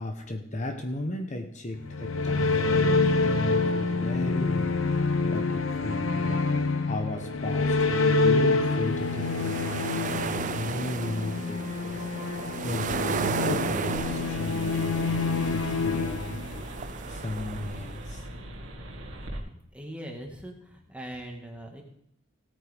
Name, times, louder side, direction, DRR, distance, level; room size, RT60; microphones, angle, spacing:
voice 1, 0.0-6.4 6.9-12.1 12.6-18.4, left 1 dB, 35° left, 3 dB, 1.0 m, -35 dB
sound 1, 1.8-17.0, left 3 dB, 80° left, 0.9 m, -27 dB
sound 2, 8.9-18.1, right 5 dB, 40° right, 0.5 m, -34 dB
sound 3, 13.9-19.4, right 1 dB, 75° right, 2.0 m, -40 dB
voice 2, 19.7-21.8, right 1 dB, 5° right, 0 dB, 1.8 m, -41 dB
17.0 x 8.9 x 3.5 m, 0.70 s
head